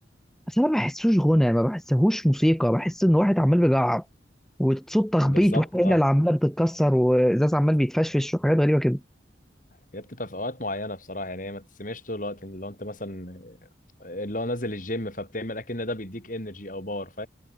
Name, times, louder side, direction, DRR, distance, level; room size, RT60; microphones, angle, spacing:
voice 1, 0.5-4.0 4.6-9.0, equal, ahead, 0.7 m, -21 dB
voice 2, 5.2-6.0 9.9-13.6 14.0-17.3, left 1 dB, 45° left, 5.7 m, -33 dB
head